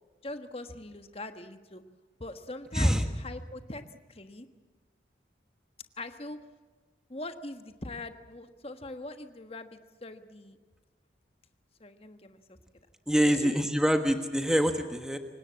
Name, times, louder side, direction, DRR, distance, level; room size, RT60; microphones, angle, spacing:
voice 1, 0.2-1.8 2.2-4.5 6.0-6.4 7.1-10.6 11.8-12.6 13.2-13.6, left 2 dB, 30° left, 8 dB, 1.4 m, -42 dB
voice 2, 13.1-15.2, equal, 5° right, 6 dB, 1.2 m, -25 dB
27.5 x 17.5 x 8.6 m, 1.4 s
head